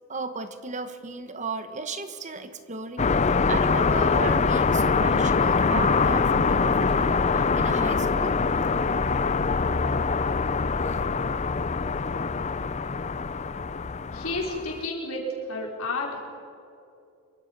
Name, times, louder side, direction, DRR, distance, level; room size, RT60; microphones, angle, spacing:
voice 1, 0.1-3.1 3.5-8.4, right 4 dB, 35° right, 10 dB, 1.2 m, -35 dB
sound 1, 3.0-14.8, left 4 dB, 30° left, 0.5 m, -24 dB
voice 2, 14.1-15.2 15.5-16.2, left 3 dB, 80° left, -1 dB, 4.8 m, -31 dB
26.0 x 23.5 x 5.4 m, 2.5 s
head